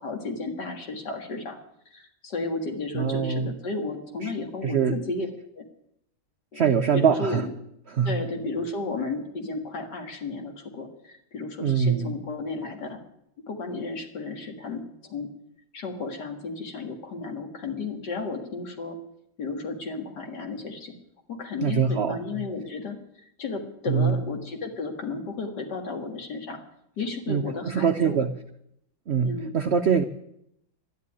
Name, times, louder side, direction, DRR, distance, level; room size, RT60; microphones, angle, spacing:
voice 1, 0.0-1.6 1.9-5.3 5.5-5.6 6.5-7.5 8.0-13.0 13.5-14.8 15.1-15.3 15.7-19.0 19.4-20.9 21.3-26.6 27.0-28.2 29.2-29.5, left 3 dB, 65° left, 4 dB, 2.4 m, -33 dB
voice 2, 2.9-3.5 4.2-4.3 4.6-5.0 6.5-7.5 7.9-8.2 11.6-12.2 21.6-22.2 23.9-24.1 27.3-28.3 29.1-30.0, right 7 dB, 70° right, 8 dB, 0.6 m, -23 dB
12.0 x 10.5 x 9.6 m, 0.78 s
omnidirectional pair, 2.0 m